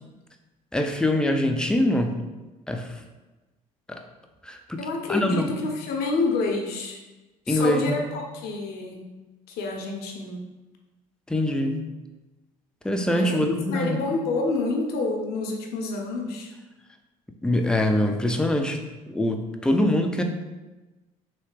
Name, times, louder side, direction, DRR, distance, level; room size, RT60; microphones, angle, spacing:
voice 1, 0.7-2.1 2.7-2.9 3.9-4.0 4.4-4.8 5.1-5.5 7.5-8.0 11.3-11.7 12.8-14.0 17.4-18.8 19.1-20.2, left 1 dB, 5° left, 4 dB, 0.4 m, -23 dB
voice 2, 4.8-7.0 7.5-9.1 9.5-10.4 13.1-13.4 13.7-16.5, left 3 dB, 60° left, 2 dB, 0.7 m, -28 dB
3.2 x 2.7 x 3.2 m, 1.1 s
hypercardioid pair, 65°, 18 cm